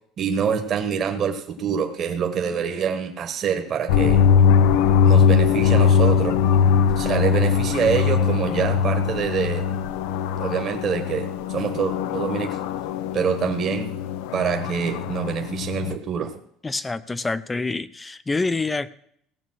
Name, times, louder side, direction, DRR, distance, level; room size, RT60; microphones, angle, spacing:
voice 1, 0.2-4.2 5.0-6.4 7.0-9.6 10.4-12.6 13.1-13.9 14.3-16.4, right 7 dB, 40° right, 4 dB, 1.3 m, -25 dB
sound 1, 3.9-16.0, left 7 dB, 85° left, 0.6 m, -21 dB
voice 2, 16.6-18.9, left 3 dB, 15° left, 16 dB, 0.6 m, -26 dB
16.5 x 6.8 x 6.2 m, 0.68 s
cardioid pair, 125°, 0 cm